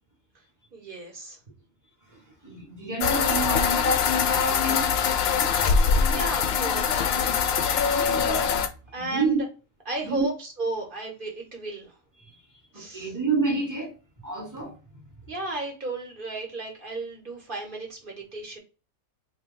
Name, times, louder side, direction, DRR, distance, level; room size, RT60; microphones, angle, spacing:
voice 1, 0.7-1.4 6.0-7.1 8.9-9.4 9.9-11.9 12.7-13.1 15.3-18.6, right 2 dB, 40° right, 1.2 m, -34 dB
voice 2, 2.1-5.0 5.7-5.9 7.3-8.6 8.9-9.4 10.0-10.3 12.2-12.4 12.7-13.9 14.2-15.0, right 4 dB, 15° right, 1.1 m, -31 dB
sound 1, 3.0-8.7, left 6 dB, 65° left, 0.6 m, -23 dB
4.0 x 2.2 x 3.7 m
omnidirectional pair, 1.5 m